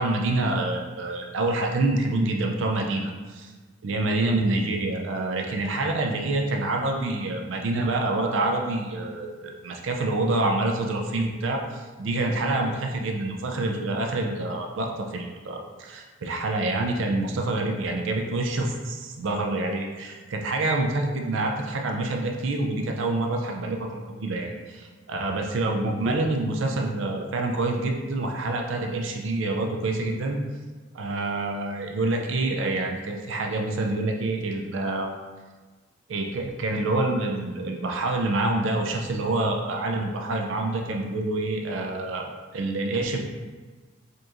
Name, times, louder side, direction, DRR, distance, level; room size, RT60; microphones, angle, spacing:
voice 1, 0.0-3.5 3.8-30.4 30.9-35.1 36.1-43.2, right 2 dB, 70° right, 2 dB, 0.4 m, -27 dB
5.0 x 3.0 x 2.4 m, 1.3 s
head